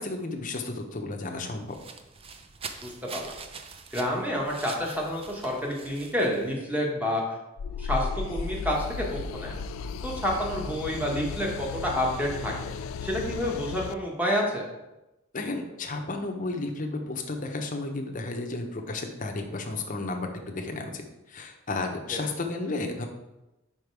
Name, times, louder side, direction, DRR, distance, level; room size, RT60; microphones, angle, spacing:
voice 1, 0.0-1.7 15.3-23.0, left 2 dB, 40° left, 3 dB, 0.8 m, -33 dB
sound 1, 1.4-6.6, right 5 dB, 30° right, 0.4 m, -44 dB
voice 2, 2.8-3.3 3.9-7.2 7.8-9.6 10.0-12.7 13.0-14.7 22.1-22.2, equal, 10° right, -2 dB, 1.3 m, -29 dB
sound 2, 7.6-13.9, left 4 dB, 80° left, 0.3 m, -35 dB
5.2 x 5.1 x 4.7 m, 0.97 s
head